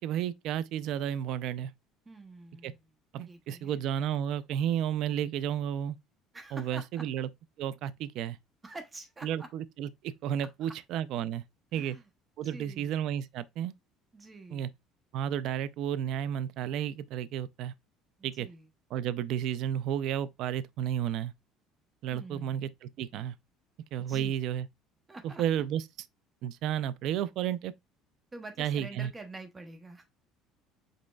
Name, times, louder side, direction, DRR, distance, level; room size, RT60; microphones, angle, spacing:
voice 1, 0.0-1.7 2.6-2.7 3.1-6.0 6.5-7.3 7.6-8.4 9.2-11.4 11.7-12.0 12.4-13.7 14.5-14.7 15.1-17.7 18.2-18.5 18.9-21.3 22.0-23.3 23.9-24.7 25.2-25.8 26.4-27.7 28.6-29.1, right 10 dB, 60° right, 0.4 m, -32 dB
voice 2, 2.1-2.9 3.3-3.8 6.3-7.0 8.6-9.5 10.6-10.7 11.7-12.1 12.4-12.9 14.1-14.7 18.2-18.7 22.1-22.7 24.0-24.3 25.1-25.4 28.3-30.1, right 2 dB, 20° right, 0.7 m, -46 dB
5.2 x 4.1 x 2.3 m
cardioid pair, 120°, 0 cm